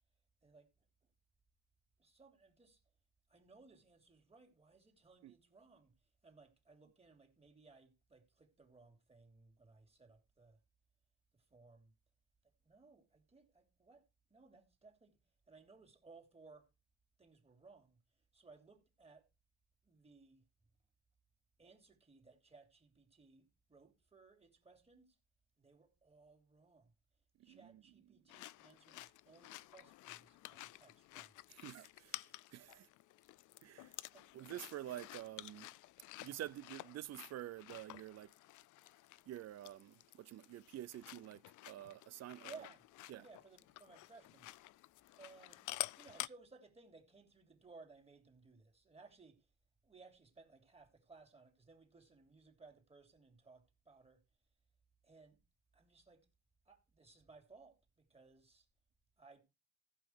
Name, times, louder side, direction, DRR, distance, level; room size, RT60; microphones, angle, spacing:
voice 1, 2.0-2.8 3.3-10.6 11.3-11.9 12.6-14.0 14.3-15.2 15.5-16.7 17.2-19.3 19.8-20.4 21.6-25.2 25.6-26.9 27.4-31.4 34.1-34.3 42.5-42.8 43.2-44.5 45.2-49.5 49.8-54.2 55.0-55.4 55.7-56.3 56.6-58.7 59.2-59.4, right 3 dB, 20° right, 3.1 m, -62 dB
voice 2, 27.4-27.8 31.5-32.9 33.6-33.9 34.3-35.7 36.2-38.3 39.3-42.5 43.1-43.3, right 13 dB, 60° right, 0.5 m, -49 dB
sound 1, 28.3-46.3, left 17 dB, 80° left, 0.5 m, -51 dB
15.0 x 5.7 x 4.6 m
cardioid pair, 90°, 30 cm